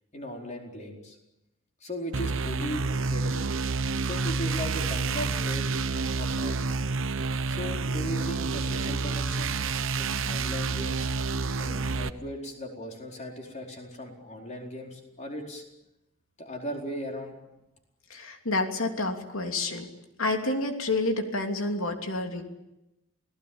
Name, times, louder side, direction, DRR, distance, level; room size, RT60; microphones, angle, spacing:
voice 1, 0.1-1.2 1.8-3.5 4.0-5.7 6.2-6.6 7.5-9.6 10.0-11.1 11.6-15.6 16.4-17.4, equal, 35° left, 1 dB, 4.6 m, -37 dB
sound 1, 2.1-12.1, right 4 dB, 70° right, 1.0 m, -29 dB
voice 2, 18.1-19.9 20.2-22.4, left 2 dB, 80° left, 4 dB, 3.0 m, -29 dB
28.5 x 18.0 x 8.8 m, 0.93 s
head